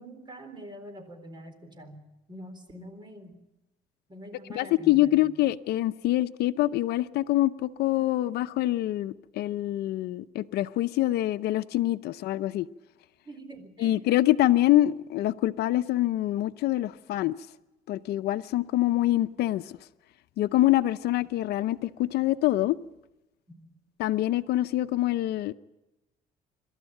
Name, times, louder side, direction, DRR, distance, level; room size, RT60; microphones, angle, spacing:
voice 1, 0.0-3.4 4.1-5.2 13.2-14.0 23.6-23.7, right 1 dB, 25° right, 9 dB, 3.9 m, -45 dB
voice 2, 4.5-12.7 13.8-17.4 17.9-19.8 20.4-22.8 24.0-25.5, left 15 dB, 75° left, 12 dB, 0.7 m, -25 dB
26.5 x 13.0 x 9.1 m, 0.98 s
cardioid pair, 110°, 17 cm